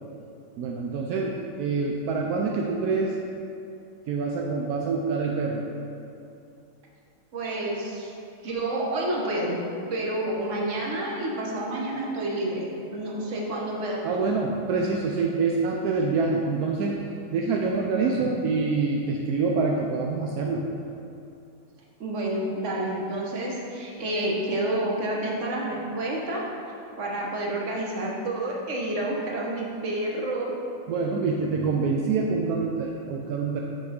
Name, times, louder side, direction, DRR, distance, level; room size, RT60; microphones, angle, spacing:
voice 1, 0.6-3.1 4.1-5.6 14.0-17.0 17.3-20.6 30.9-33.6, right 4 dB, 75° right, -1 dB, 0.9 m, -26 dB
voice 2, 7.3-8.1 8.4-14.2 18.1-18.4 22.0-26.5 27.0-30.5, right 1 dB, 45° right, -2 dB, 1.2 m, -29 dB
6.3 x 5.6 x 5.0 m, 2.6 s
omnidirectional pair, 2.1 m